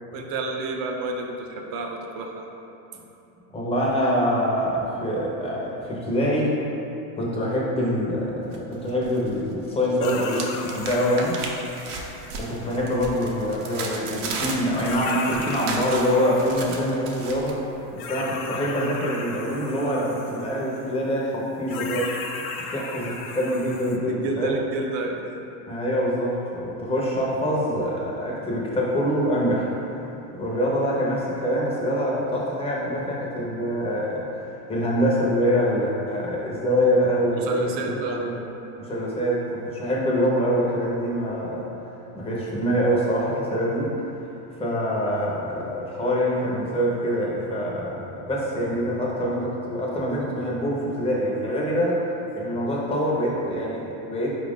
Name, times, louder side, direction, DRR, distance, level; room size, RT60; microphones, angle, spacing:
voice 1, 0.1-2.4 24.1-25.2 37.3-38.6, right 3 dB, 50° right, 2 dB, 0.5 m, -30 dB
voice 2, 3.5-6.5 7.2-11.4 12.4-17.6 17.9-22.2 22.7-24.6 25.7-29.7 30.3-38.4 38.8-41.7 42.1-43.9 44.6-52.0 52.4-54.4, equal, 15° left, -5 dB, 0.6 m, -25 dB
sound 1, 8.5-9.4 9.7-17.5, right 4 dB, 85° right, 0.7 m, -35 dB
sound 2, 10.0-12.9 14.4-14.5 14.8-16.9 18.0-20.9 21.7-24.0, left 4 dB, 65° left, 0.6 m, -35 dB
4.5 x 2.5 x 3.5 m, 2.9 s
supercardioid pair, 125°, 45 cm